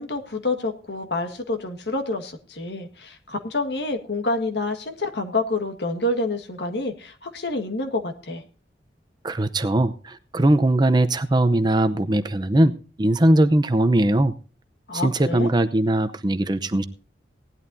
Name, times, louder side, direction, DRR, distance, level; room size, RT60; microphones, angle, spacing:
voice 1, 0.0-8.4 14.9-15.5, left 2 dB, 65° left, 6 dB, 1.7 m, -28 dB
voice 2, 9.2-12.7 13.0-14.4 15.0-16.8, right 1 dB, 25° right, 10 dB, 0.7 m, -20 dB
18.0 x 11.5 x 2.7 m, 0.37 s
head